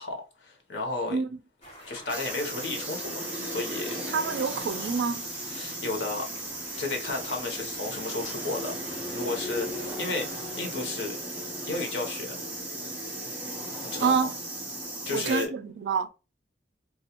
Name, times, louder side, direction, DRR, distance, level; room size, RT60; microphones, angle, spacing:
voice 1, 0.0-1.2 1.9-4.0 5.5-6.3 6.8-8.8 9.1-11.2 11.6-12.3 13.8-14.1 15.0-15.5, left 3 dB, 80° left, 0.8 m, -33 dB
voice 2, 1.1-1.4 4.1-5.3 14.0-14.4 15.1-16.1, right 5 dB, 75° right, 0.3 m, -27 dB
sound 1, 1.6-10.8, equal, 35° left, 1.1 m, -49 dB
sound 2, 2.1-15.5, right 1 dB, 10° right, 0.8 m, -36 dB
2.3 x 2.1 x 2.9 m
head